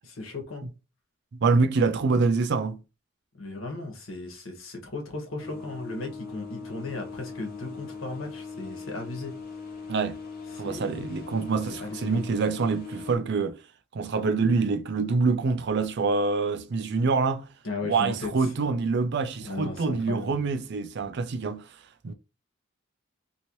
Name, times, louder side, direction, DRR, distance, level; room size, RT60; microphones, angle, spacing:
voice 1, 0.2-0.7 3.4-9.3 10.5-11.1 11.8-12.2 17.6-18.5 19.4-20.4, left 3 dB, 90° left, 1.1 m, -36 dB
voice 2, 1.4-2.8 9.9-10.2 10.6-13.6 13.9-17.5 17.8-21.6 22.0-22.1, right 4 dB, 60° right, 0.5 m, -25 dB
sound 1, 5.4-13.2, left 5 dB, 50° left, 0.9 m, -40 dB
2.9 x 2.7 x 2.9 m
head